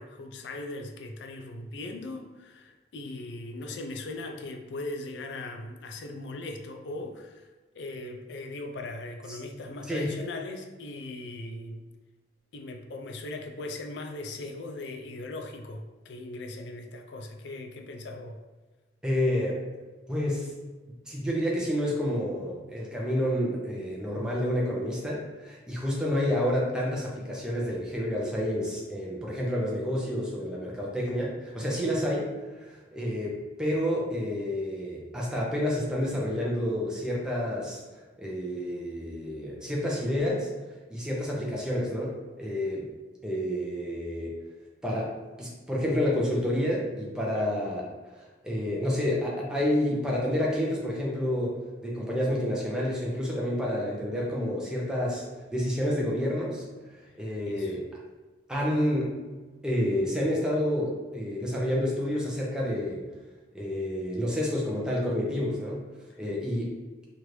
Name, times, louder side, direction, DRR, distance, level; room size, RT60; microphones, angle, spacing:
voice 1, 0.0-11.8 12.5-18.4 31.7-31.9 47.3-47.5 57.5-57.8, left 2 dB, 70° left, 4 dB, 0.4 m, -39 dB
voice 2, 19.0-19.6 20.1-20.5 21.1-32.3 32.5-37.8 38.2-40.5 40.9-42.9 43.2-44.4 44.8-45.1 45.4-47.9 48.1-51.6 51.8-55.2 55.5-56.6 57.1-57.8 58.5-59.2 59.6-63.0 63.5-65.8 66.2-66.7, left 1 dB, 5° right, -4 dB, 0.6 m, -29 dB
3.0 x 2.5 x 3.1 m, 1.2 s
head